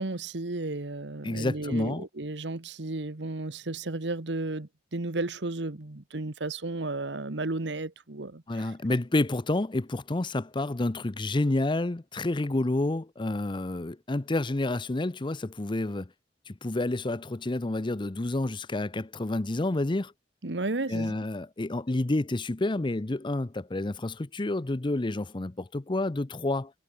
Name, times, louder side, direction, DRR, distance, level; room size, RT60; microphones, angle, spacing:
voice 1, 0.0-8.7 20.4-21.2, right 2 dB, 85° right, 1.4 m, -33 dB
voice 2, 1.2-2.1 8.5-16.1 16.5-20.1 20.9-26.7, left 2 dB, 30° left, 0.7 m, -29 dB
head